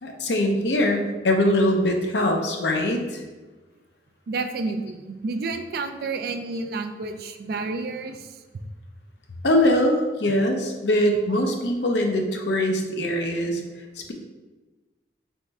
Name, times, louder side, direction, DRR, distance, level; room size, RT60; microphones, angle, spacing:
voice 1, 0.0-3.2 9.4-13.6 14.0-14.1, left 1 dB, 75° left, 3 dB, 0.7 m, -22 dB
voice 2, 4.3-8.4, right 3 dB, 55° right, 7 dB, 0.4 m, -30 dB
3.6 x 3.4 x 4.1 m, 1.2 s
head